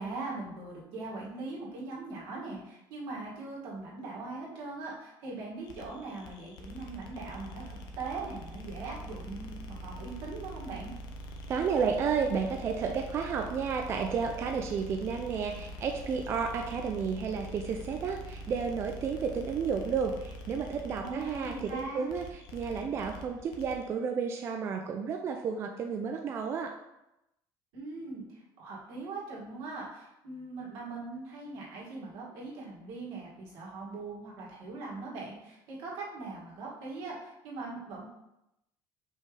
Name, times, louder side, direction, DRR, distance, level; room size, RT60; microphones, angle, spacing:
voice 1, 0.0-10.9 21.0-22.1 27.7-38.0, right 3 dB, 80° right, -5 dB, 2.2 m, -41 dB
sound 1, 5.6-23.9, equal, 55° left, 0.8 m, -44 dB
voice 2, 11.5-26.7, right 6 dB, 30° right, 4 dB, 0.4 m, -32 dB
5.3 x 3.4 x 5.2 m, 0.88 s
cardioid pair, 175°, 8 cm